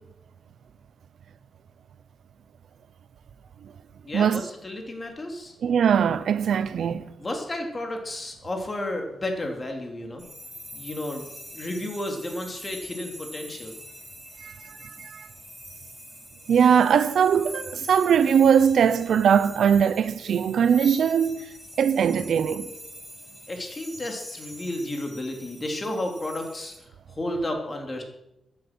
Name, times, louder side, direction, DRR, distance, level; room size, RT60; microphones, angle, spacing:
voice 1, 4.0-5.5 7.2-10.2 10.7-11.3 11.5-13.8 23.5-26.7 27.1-28.0, left 1 dB, 25° left, 3.5 m, -32 dB
voice 2, 5.6-7.0 14.4-15.3 16.5-21.5 21.8-22.7, right 7 dB, 75° right, 0.8 m, -21 dB
sound 1, 10.2-26.8, equal, 10° left, 8.0 m, -44 dB
16.0 x 10.5 x 6.3 m
wide cardioid pair, 115°, 0 cm